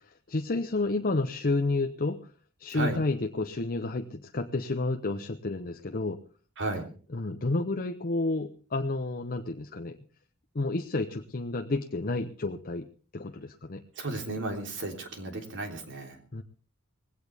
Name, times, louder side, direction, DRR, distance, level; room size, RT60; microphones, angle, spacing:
voice 1, 0.0-2.3 2.6-6.2 7.1-10.0 10.5-12.9 13.1-13.8 16.3-16.4, left 2 dB, 40° left, 6 dB, 0.8 m, -30 dB
voice 2, 2.7-3.0 6.6-6.9 13.9-16.2, right 2 dB, 55° right, 4 dB, 3.4 m, -34 dB
20.0 x 16.5 x 3.5 m, 0.41 s
head